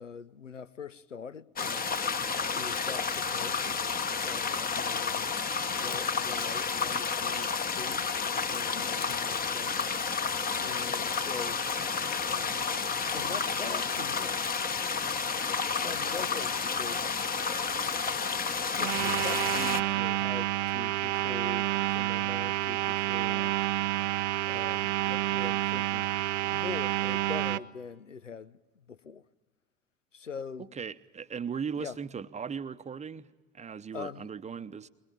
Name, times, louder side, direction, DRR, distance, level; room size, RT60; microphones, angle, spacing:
voice 1, 0.0-2.2 2.5-5.3 5.7-9.8 10.6-11.6 12.3-12.7 13.1-14.4 15.8-17.1 18.8-23.6 24.4-26.2 26.4-29.2 30.1-30.7 31.7-32.0 33.9-34.3, left 5 dB, 85° left, 0.7 m, -43 dB
sound 1, 1.6-19.8, left 5 dB, 25° left, 1.1 m, -31 dB
sound 2, 18.8-27.6, right 15 dB, 70° right, 0.7 m, -29 dB
voice 2, 30.6-33.3 33.5-34.9, right 6 dB, 20° right, 0.9 m, -38 dB
22.0 x 21.0 x 9.1 m
figure-of-eight pair, 65°, 36 cm